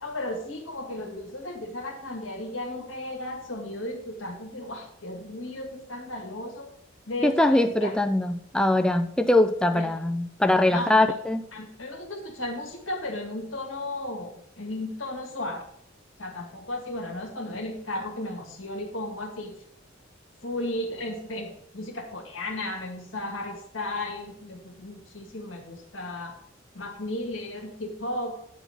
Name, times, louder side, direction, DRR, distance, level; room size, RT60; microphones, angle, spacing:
voice 1, 0.0-6.7 7.1-7.9 9.7-9.8 10.7-11.0 11.5-15.6 16.2-19.5 20.4-26.3 26.7-28.4, left 1 dB, 85° left, 2 dB, 2.0 m, -34 dB
voice 2, 7.2-11.4, left 1 dB, 5° left, 7 dB, 0.4 m, -22 dB
9.0 x 4.1 x 7.1 m, 0.74 s
head